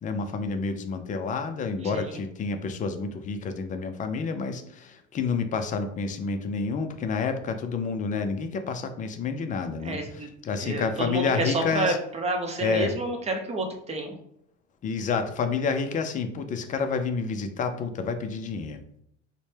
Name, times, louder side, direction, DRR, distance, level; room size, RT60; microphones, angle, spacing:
voice 1, 0.0-10.0 10.4-12.0 12.6-12.9 14.8-18.8, left 5 dB, 25° left, 7 dB, 0.4 m, -29 dB
voice 2, 1.8-2.2 9.8-10.3 10.6-14.2, right 2 dB, 20° right, 3 dB, 0.7 m, -29 dB
4.2 x 2.1 x 3.2 m, 0.73 s
supercardioid pair, 110°, 30 cm